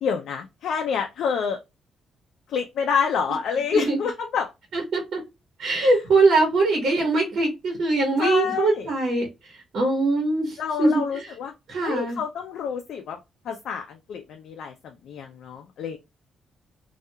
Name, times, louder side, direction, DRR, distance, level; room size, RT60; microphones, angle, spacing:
voice 1, 0.0-1.6 2.5-4.5 5.8-6.0 8.2-8.9 10.6-11.5 11.8-13.2 13.4-16.0, left 6 dB, 75° left, 0.4 m, -28 dB
voice 2, 4.7-5.2 5.6-9.3 9.7-11.0 11.7-12.2, right 3 dB, 65° right, 1.0 m, -22 dB
2.7 x 2.3 x 2.3 m
cardioid pair, 145°, 0 cm